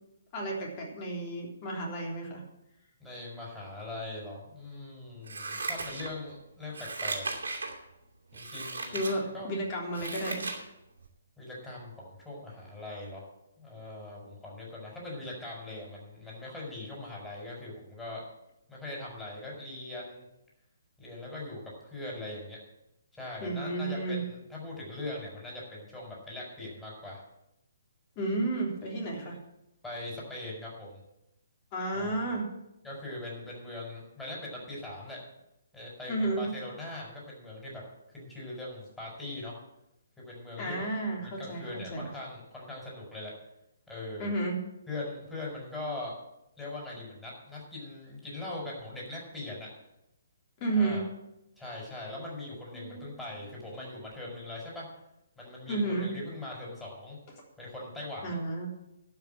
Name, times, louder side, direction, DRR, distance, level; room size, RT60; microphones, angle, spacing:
voice 1, 0.3-2.4 8.9-10.5 23.4-24.2 28.2-29.4 31.7-32.5 36.1-36.5 40.6-42.1 44.2-44.6 50.6-51.1 52.7-53.0 55.7-56.1 58.2-58.7, right 2 dB, 30° left, -1 dB, 3.5 m, -32 dB
voice 2, 3.0-7.3 8.3-9.6 11.4-13.3 13.6-18.2 18.7-20.3 21.0-22.6 23.1-27.2 29.8-31.0 31.9-32.2 32.8-35.2 35.7-37.8 38.1-39.6 40.2-40.8 41.2-43.3 43.9-44.3 44.9-46.1 46.6-49.7 50.7-51.0 51.6-54.9 55.4-57.2 57.6-58.4, left 2 dB, 10° left, -4 dB, 4.8 m, -41 dB
Scissors, 5.2-6.3 6.7-7.7 8.3-9.1 9.6-10.6 11.0-11.1, right 3 dB, 70° right, 2.5 m, -36 dB
12.0 x 6.0 x 8.7 m, 0.87 s
figure-of-eight pair, 135°, 0 cm